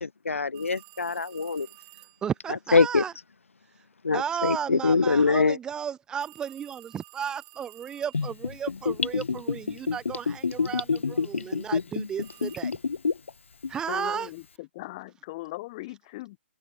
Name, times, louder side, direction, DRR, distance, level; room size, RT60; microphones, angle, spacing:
voice 1, 0.0-1.7 2.7-3.0 4.0-5.6, left 4 dB, 85° left, 0.4 m, -23 dB
sound 1, 0.5-2.3 6.2-8.5 12.2-12.6, right 28 dB, 30° right, 4.6 m, -52 dB
voice 2, 2.2-3.1 4.1-12.7 13.7-14.3, right 8 dB, 10° right, 0.6 m, -33 dB
Gurgling / Bathtub (filling or washing), 8.1-13.3 13.6-13.7, left 5 dB, 70° left, 0.9 m, -28 dB
voice 3, 13.9-16.4, left 20 dB, 30° left, 2.2 m, -39 dB
figure-of-eight pair, 140°, 7 cm